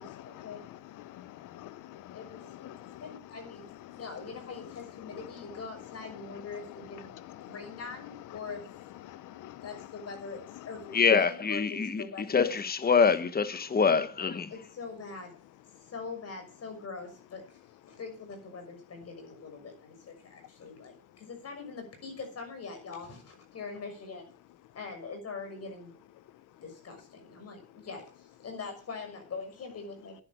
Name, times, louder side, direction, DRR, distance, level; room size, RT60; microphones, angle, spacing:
voice 1, 0.0-10.1 10.3-11.0 15.7-15.9 17.9-18.0 20.6-20.7 21.1-21.2 26.2-26.5 27.4-27.5, left 14 dB, 90° left, 0.9 m, -48 dB
voice 2, 2.1-3.7 3.9-8.6 9.6-10.4 10.6-12.5 12.9-13.3 14.5-15.4 15.9-24.3 24.7-25.9 26.6-30.2, left 4 dB, 55° left, 6.2 m, -43 dB
voice 3, 10.9-12.0 12.3-14.5, left 5 dB, 30° left, 1.3 m, -25 dB
10.5 x 10.5 x 6.5 m
cardioid pair, 90°, 30 cm